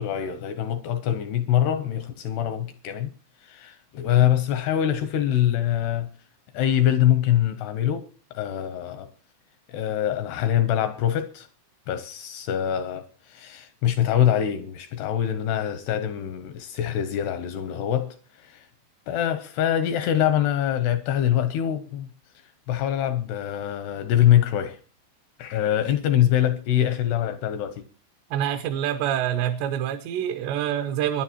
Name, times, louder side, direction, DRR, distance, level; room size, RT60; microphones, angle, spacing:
voice 1, 0.0-3.1 3.4-6.1 6.5-9.1 9.7-11.5 11.9-18.7 19.1-22.1 22.7-24.8 25.4-27.9, left 11 dB, 80° left, 2.4 m, -24 dB
voice 2, 28.3-31.2, right 10 dB, 75° right, 2.7 m, -26 dB
22.5 x 10.5 x 2.9 m
omnidirectional pair, 5.5 m